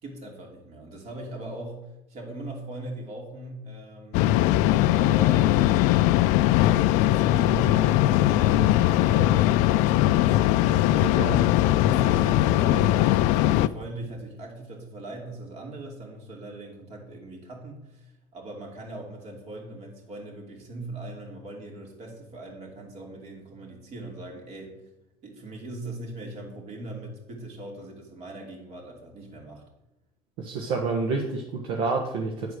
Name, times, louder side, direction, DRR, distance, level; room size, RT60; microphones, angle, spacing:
voice 1, 0.0-4.2 4.9-5.7 6.9-11.3 11.8-24.8 25.2-29.6, right 2 dB, 60° right, 0 dB, 2.8 m, -39 dB
sound 1, 4.1-13.7, left 14 dB, 75° left, 0.4 m, -20 dB
voice 2, 11.0-11.4 30.4-32.5, right 4 dB, 80° right, 0 dB, 1.2 m, -28 dB
9.6 x 4.7 x 6.3 m, 0.93 s
supercardioid pair, 105°, 12 cm